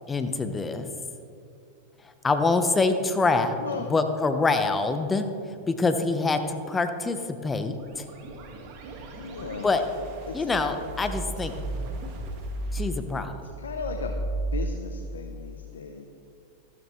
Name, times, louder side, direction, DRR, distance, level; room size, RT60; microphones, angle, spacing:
voice 1, 0.1-0.9 2.2-3.5 3.9-5.3 5.7-7.8 9.6-9.8 10.3-11.5 12.7-13.3, left 3 dB, 15° left, 8 dB, 1.0 m, -25 dB
voice 2, 3.6-3.9 9.1-9.7 10.3-10.5 13.6-14.2 14.5-16.0, left 5 dB, 85° left, 5 dB, 0.8 m, -36 dB
sound 1, 7.7-14.5, right 2 dB, 50° right, 1.9 m, -35 dB
14.0 x 12.5 x 3.3 m, 2.6 s
hypercardioid pair, 105°, 0 cm